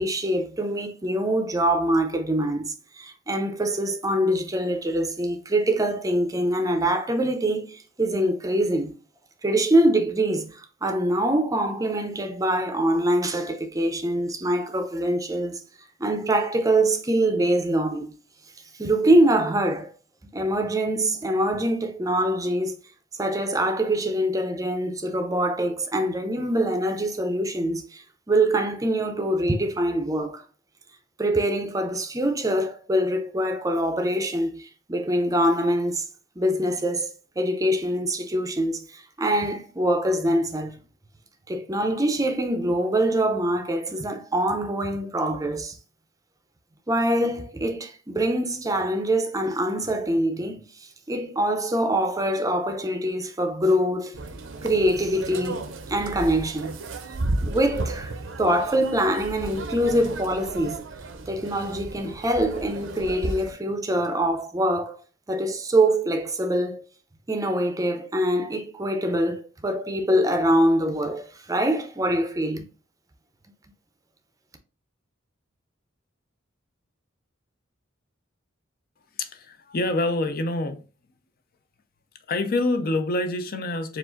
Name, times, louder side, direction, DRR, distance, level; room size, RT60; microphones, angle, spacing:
voice 1, 0.0-8.9 9.4-15.6 16.0-18.1 18.8-19.9 20.3-22.8 23.2-30.4 31.2-36.0 36.4-40.8 41.5-45.8 46.9-54.1 54.6-56.8 57.4-58.1 58.4-60.8 61.3-65.0 65.3-66.8 67.3-72.6, right 1 dB, 15° right, 0.5 m, -24 dB
sound 1, 54.1-63.5, right 2 dB, 70° right, 0.6 m, -33 dB
voice 2, 79.2-80.8 82.3-84.0, left 2 dB, 50° left, 0.5 m, -26 dB
4.7 x 2.5 x 3.8 m
head